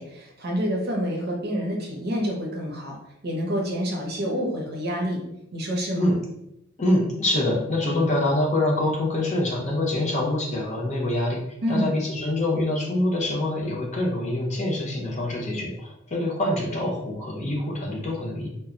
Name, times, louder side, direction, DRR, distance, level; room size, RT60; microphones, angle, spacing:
voice 1, 0.0-3.0 3.2-5.2 5.5-6.1 11.6-11.9, equal, 50° right, -1 dB, 0.6 m, -27 dB
voice 2, 6.8-11.4 11.7-18.5, left 1 dB, 35° left, -2 dB, 0.6 m, -25 dB
2.2 x 2.0 x 3.6 m, 0.81 s
head